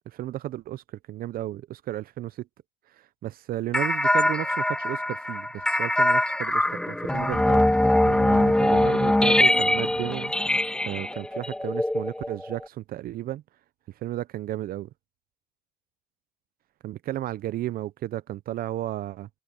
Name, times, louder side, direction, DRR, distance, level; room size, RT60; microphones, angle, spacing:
voice 1, 0.1-2.5 3.0-7.6 8.0-10.3 10.9-13.4 14.0-14.9 16.8-19.3, right 14 dB, 60° right, 0.5 m, -33 dB
sound 1, 3.7-12.6, left 1 dB, 5° left, 0.6 m, -23 dB
cardioid pair, 110°, 17 cm